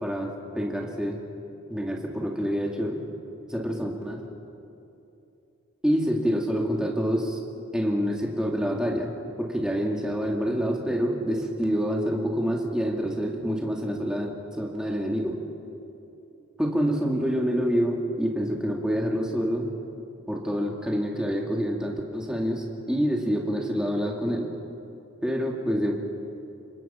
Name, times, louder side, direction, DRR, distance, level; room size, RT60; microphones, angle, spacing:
voice 1, 0.0-1.2 1.7-3.0 3.5-4.2 5.8-7.4 7.7-9.1 9.4-15.4 16.6-19.7 20.3-24.5 25.2-26.0, equal, 5° right, -1 dB, 2.3 m, -27 dB
28.0 x 24.0 x 5.8 m, 2.8 s
head